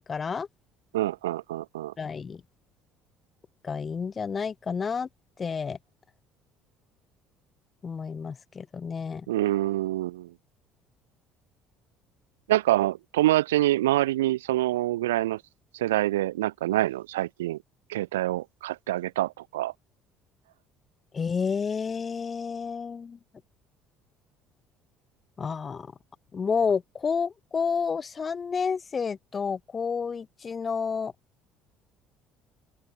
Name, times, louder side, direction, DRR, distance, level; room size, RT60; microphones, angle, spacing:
voice 1, 0.1-0.5 2.0-2.4 3.6-5.1 5.4-5.8 7.8-9.3 21.1-23.2 25.4-25.9 26.3-31.1, left 5 dB, 35° left, 5.5 m, -30 dB
voice 2, 0.9-1.9 9.3-10.3 12.5-15.4 15.7-17.6 17.9-19.7, right 15 dB, 85° right, 2.7 m, -26 dB
open air
hypercardioid pair, 60°, 0 cm